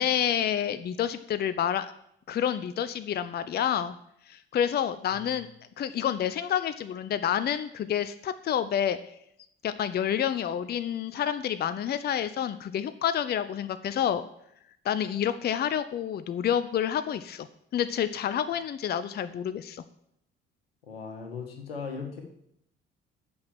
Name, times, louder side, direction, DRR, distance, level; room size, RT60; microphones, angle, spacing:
voice 1, 0.0-1.9 2.3-4.0 4.3-5.5 5.8-9.0 9.6-14.3 14.8-17.5 17.7-19.8, left 9 dB, 35° left, 13 dB, 0.6 m, -28 dB
voice 2, 20.9-22.2, left 5 dB, 80° left, 4 dB, 1.5 m, -37 dB
8.6 x 6.1 x 7.4 m, 0.73 s
figure-of-eight pair, 50°, 29 cm